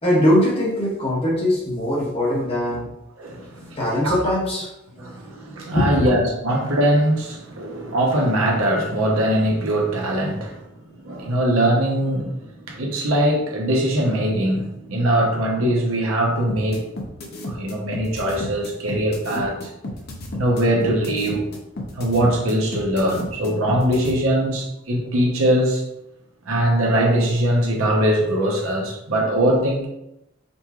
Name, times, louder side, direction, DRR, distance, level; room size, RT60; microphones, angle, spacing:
voice 1, 0.0-2.9 3.8-4.7 5.7-6.0, left 1 dB, 30° left, -4 dB, 1.2 m, -21 dB
voice 2, 3.2-4.1 5.0-10.7 11.0-16.9 17.4-19.7 20.3-21.5 22.0-25.8 26.5-29.9, right 1 dB, 85° right, 0 dB, 0.9 m, -21 dB
sound 1, 16.5-24.1, left 1 dB, 50° left, 0.7 m, -32 dB
5.2 x 3.0 x 2.4 m, 0.87 s
head